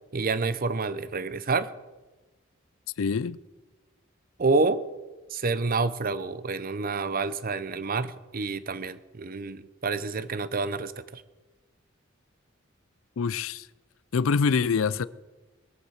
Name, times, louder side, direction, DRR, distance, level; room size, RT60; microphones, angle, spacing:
voice 1, 0.1-1.7 4.4-4.8 5.3-11.2, right 3 dB, 45° right, 0.7 m, -28 dB
voice 2, 3.0-3.4 13.2-13.7 14.1-15.1, left 5 dB, 85° left, 0.5 m, -25 dB
21.0 x 8.1 x 6.5 m
head